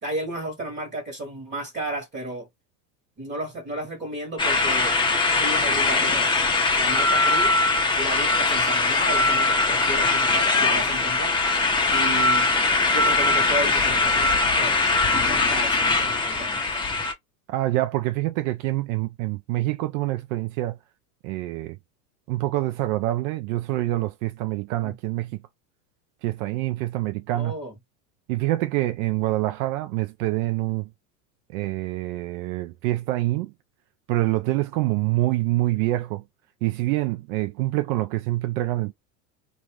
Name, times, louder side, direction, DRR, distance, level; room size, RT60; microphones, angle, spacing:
voice 1, 0.0-2.5 3.2-5.0 5.3-6.4 6.8-7.6 7.9-11.6 11.9-12.5 12.9-15.0 15.3-16.9 24.8-24.9 27.3-27.8, right 1 dB, 25° right, 1.3 m, -33 dB
sound 1, 4.4-17.1, left 3 dB, 10° left, 0.7 m, -21 dB
voice 2, 17.5-20.8 21.2-21.8 22.3-25.4 26.2-27.6 28.3-30.9 31.5-33.5 34.1-36.2 36.6-38.9, right 17 dB, 65° right, 0.5 m, -26 dB
2.4 x 2.4 x 3.1 m
supercardioid pair, 110°, 47 cm